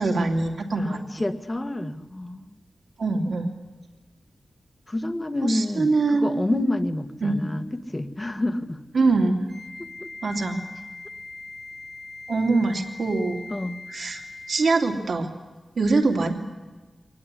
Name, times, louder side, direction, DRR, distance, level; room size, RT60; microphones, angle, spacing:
voice 1, 0.0-1.0 3.0-3.5 5.4-6.7 7.2-7.4 8.9-9.4 10.2-10.6 12.3-13.4 13.9-14.2 14.5-15.3 15.8-16.3, right 3 dB, 75° right, 2 dB, 2.9 m, -23 dB
voice 2, 0.7-2.5 4.9-8.8 10.0-10.1 13.5-13.8, left 1 dB, 20° left, 8 dB, 1.6 m, -28 dB
Wind instrument woodwind instrument, 9.5-14.8, left 3 dB, 10° right, 4.3 m, -41 dB
23.0 x 19.5 x 9.9 m, 1.2 s
wide cardioid pair, 105°, 0 cm